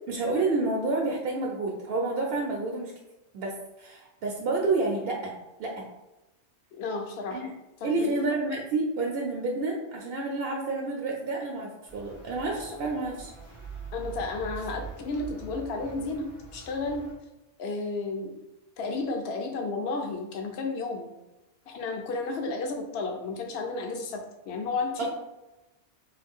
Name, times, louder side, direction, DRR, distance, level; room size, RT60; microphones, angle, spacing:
voice 1, 0.1-2.9 3.3-5.3 5.6-5.7 7.3-7.5 7.8-13.3 25.0-25.1, right 3 dB, 60° right, -2 dB, 0.8 m, -29 dB
voice 2, 6.7-7.4 7.8-8.1 13.9-17.1 17.6-18.3 18.8-21.1 21.7-25.1, left 3 dB, 65° left, 3 dB, 0.8 m, -32 dB
sound 1, 11.9-17.1, right 4 dB, 85° left, 1.7 m, -43 dB
3.9 x 2.3 x 3.5 m, 1.0 s
omnidirectional pair, 1.2 m